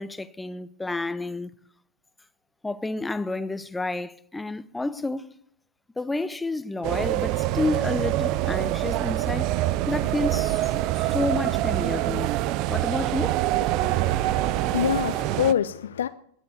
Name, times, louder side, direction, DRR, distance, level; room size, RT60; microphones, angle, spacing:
voice 1, 0.0-1.5 2.6-5.3 6.0-9.5 9.9-12.3 12.7-13.4, left 2 dB, 10° left, 0.7 m, -30 dB
sound 1, 6.8-15.5, right 15 dB, 40° right, 0.6 m, -25 dB
voice 2, 13.7-16.1, left 9 dB, 65° left, 0.6 m, -27 dB
20.5 x 7.4 x 6.8 m
figure-of-eight pair, 90°, 0 cm